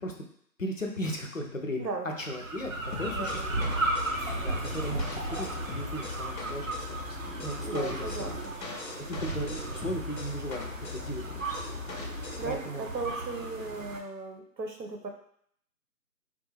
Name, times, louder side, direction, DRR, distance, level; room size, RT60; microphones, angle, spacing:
voice 1, 0.6-1.9 2.2-3.6 4.4-8.4 9.1-12.9, equal, 55° left, 2 dB, 0.5 m, -37 dB
sound 1, 2.1-14.0, right 2 dB, 55° right, 0.5 m, -35 dB
sound 2, 2.9-12.6, left 4 dB, 80° left, 0.8 m, -40 dB
voice 2, 3.0-3.5 7.7-8.5 12.4-15.1, right 3 dB, 85° right, 3 dB, 0.9 m, -37 dB
sound 3, 4.0-6.3, right 1 dB, ahead, 0.5 m, -46 dB
3.4 x 2.4 x 3.2 m, 0.66 s
figure-of-eight pair, 170°, 50 cm